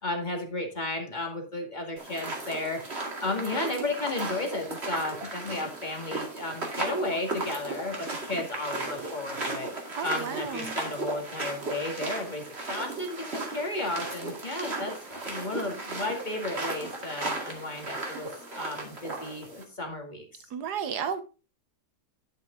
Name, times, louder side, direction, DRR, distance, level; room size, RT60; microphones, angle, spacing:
voice 1, 0.0-9.7 10.0-18.3 18.6-20.3, left 2 dB, 25° left, 2.1 m, -33 dB
sound 1, 2.0-19.6, right 2 dB, 40° right, 2.5 m, -36 dB
voice 2, 10.0-10.8 20.5-21.2, right 7 dB, 75° right, 1.6 m, -33 dB
10.5 x 6.0 x 3.8 m
omnidirectional pair, 1.8 m